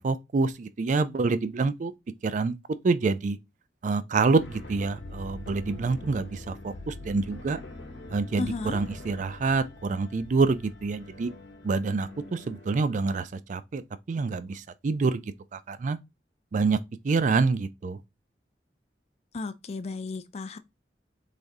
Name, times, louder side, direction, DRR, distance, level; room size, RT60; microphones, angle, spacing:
voice 1, 0.0-1.9 2.2-2.5 2.8-3.4 3.8-7.6 8.1-11.3 11.6-13.8 14.1-16.0 16.5-16.8 17.0-18.0, right 4 dB, 45° right, 0.4 m, -27 dB
sound 1, 4.4-12.8, left 2 dB, 85° left, 0.9 m, -44 dB
voice 2, 8.4-8.8 19.3-20.6, left 3 dB, 35° left, 0.4 m, -34 dB
3.3 x 2.6 x 3.6 m
head